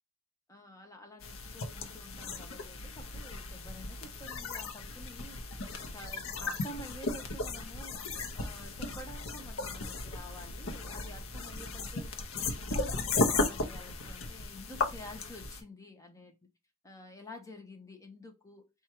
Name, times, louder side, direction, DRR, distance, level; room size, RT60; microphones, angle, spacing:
voice 1, 0.5-8.1 8.3-16.4 16.8-18.7, left 1 dB, 15° left, 0.7 m, -49 dB
sound 1, 1.2-15.6, left 3 dB, 70° left, 0.7 m, -36 dB
4.4 x 2.4 x 4.3 m
head